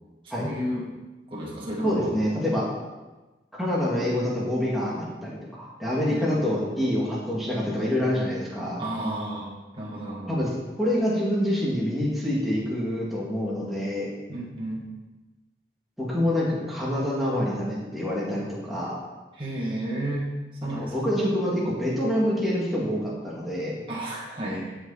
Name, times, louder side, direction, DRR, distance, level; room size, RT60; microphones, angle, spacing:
voice 1, 0.4-0.9 1.3-2.1 6.1-6.3 8.8-10.4 14.3-14.9 19.4-20.3 20.6-20.9 23.9-24.6, right 1 dB, 30° right, -5 dB, 2.3 m, -32 dB
voice 2, 1.8-2.6 3.5-8.8 10.3-10.5 10.8-14.1 16.0-19.0 20.7-23.8, left 1 dB, ahead, -6 dB, 2.2 m, -26 dB
15.5 x 5.7 x 4.2 m, 1.2 s
head